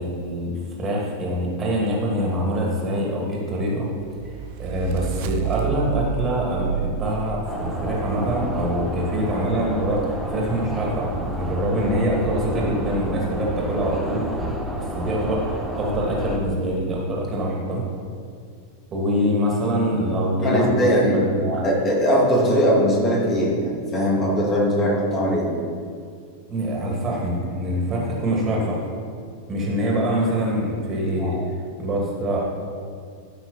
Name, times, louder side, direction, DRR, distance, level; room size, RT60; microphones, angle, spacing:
voice 1, 0.0-3.9 4.2-14.3 14.7-15.4 15.8-17.8 18.9-20.9 21.1-21.7 26.5-28.8 29.5-31.4 31.8-32.4, equal, 25° right, -3 dB, 2.6 m, -24 dB
sound 1, 4.0-8.2, right 8 dB, 50° right, 0.4 m, -30 dB
sound 2, 7.4-16.4, right 1 dB, ahead, 1.2 m, -30 dB
voice 2, 20.4-25.5 31.2-31.4, equal, 25° left, -4 dB, 2.7 m, -20 dB
14.0 x 6.0 x 4.3 m, 2.2 s
figure-of-eight pair, 90°, 0 cm